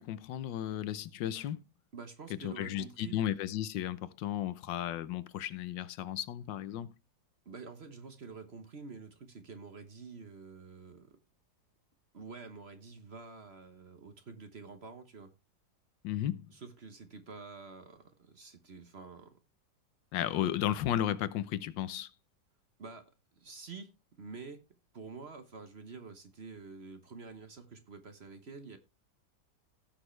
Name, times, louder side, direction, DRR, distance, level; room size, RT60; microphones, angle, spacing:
voice 1, 0.0-1.6 2.3-6.9 16.0-16.5 20.1-22.1, left 11 dB, 85° left, 1.4 m, -34 dB
voice 2, 1.9-3.2 7.4-11.2 12.1-15.3 16.5-19.4 22.8-24.6 24.9-28.8, right 4 dB, 40° right, 1.1 m, -48 dB
17.0 x 6.3 x 3.2 m
omnidirectional pair, 1.9 m